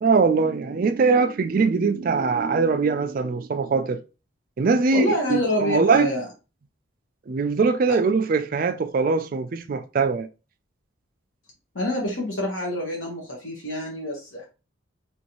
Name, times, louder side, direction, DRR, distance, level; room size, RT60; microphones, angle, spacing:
voice 1, 0.0-4.0 4.6-6.1 7.3-10.3, right 4 dB, 45° right, 0.3 m, -22 dB
voice 2, 4.9-6.3 7.9-8.0 11.7-14.5, left 1 dB, 75° left, 1.1 m, -27 dB
3.0 x 2.6 x 3.0 m
head